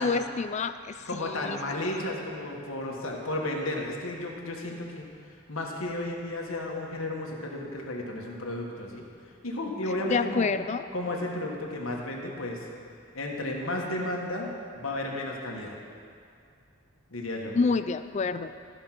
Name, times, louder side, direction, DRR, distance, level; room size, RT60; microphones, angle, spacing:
voice 1, 0.0-2.1 10.1-10.9 17.5-18.5, left 4 dB, 35° left, 11 dB, 0.3 m, -28 dB
voice 2, 1.1-5.1 5.5-9.0 9.4-10.5 10.9-12.7 13.1-15.8 17.1-17.6, left 1 dB, 85° left, -1 dB, 1.4 m, -33 dB
13.0 x 5.5 x 5.9 m, 2.3 s
head